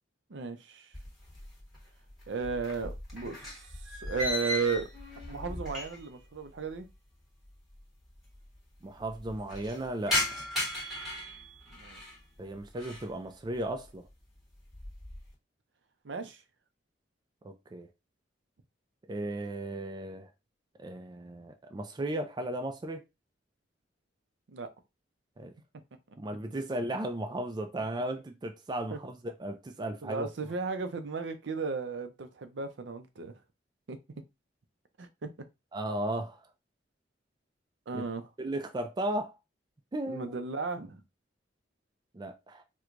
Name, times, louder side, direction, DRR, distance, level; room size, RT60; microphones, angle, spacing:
voice 1, 0.3-0.9 2.3-3.6 3.9-4.9 5.3-6.9 11.7-12.0 16.0-16.4 24.5-24.7 28.9-29.0 30.0-33.3 33.9-34.0 35.0-35.3 37.9-38.3 40.1-41.0, right 4 dB, 70° right, 0.5 m, -35 dB
sound 1, 0.9-1.8 2.1-6.2 6.5-6.6 7.4-7.5 7.7-7.8 8.1-8.6 9.0-12.2 12.6-13.1 13.6-14.0 14.4-15.3, left 1 dB, ahead, 1.2 m, -36 dB
voice 2, 8.8-10.4 12.4-14.1 17.4-17.9 19.1-20.3 20.8-23.0 25.4-25.5 26.2-30.3 35.7-36.4 37.9-38.0 38.4-39.3 39.9-40.4 42.1-42.6, right 1 dB, 25° right, 0.4 m, -35 dB
4.5 x 2.2 x 2.5 m
head